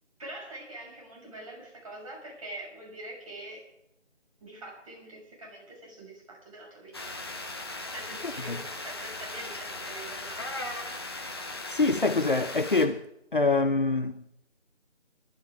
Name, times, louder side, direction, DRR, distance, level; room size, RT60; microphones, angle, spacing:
voice 1, 0.2-3.6 4.4-7.1 7.9-10.7, right 1 dB, 30° right, 6.5 m, -44 dB
sound 1, 6.9-12.9, left 2 dB, 20° left, 1.2 m, -38 dB
voice 2, 11.7-13.0 13.3-14.2, left 3 dB, 45° left, 0.7 m, -25 dB
21.5 x 13.0 x 3.7 m
figure-of-eight pair, 165°, 35 cm